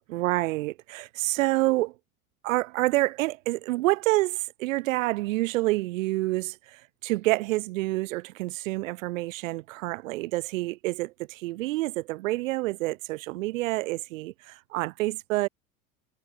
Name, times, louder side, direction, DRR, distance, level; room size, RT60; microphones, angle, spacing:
voice 1, 0.1-1.9 2.4-15.5, right 19 dB, 65° right, 3.5 m, -28 dB
hypercardioid pair, 80°, 42 cm